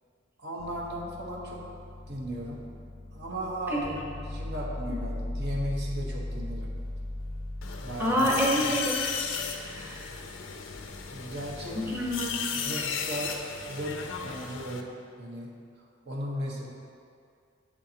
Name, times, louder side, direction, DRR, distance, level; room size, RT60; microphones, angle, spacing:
voice 1, 0.4-1.6 2.1-2.6 3.1-6.7 7.8-8.8 11.1-11.8 12.5-13.3 13.7-14.0 14.2-14.9 15.2-15.5 15.8-16.7, right 1 dB, 60° right, -2 dB, 1.1 m, -36 dB
sound 1, 0.6-12.4 13.3-13.6, left 1 dB, 20° left, 0.4 m, -39 dB
sound 2, 7.6-14.8, left 6 dB, 80° left, 0.6 m, -35 dB
voice 2, 8.0-9.1 9.4-10.1 11.7-12.4, equal, 10° right, -4 dB, 0.9 m, -28 dB
8.5 x 7.3 x 2.9 m, 2.3 s
head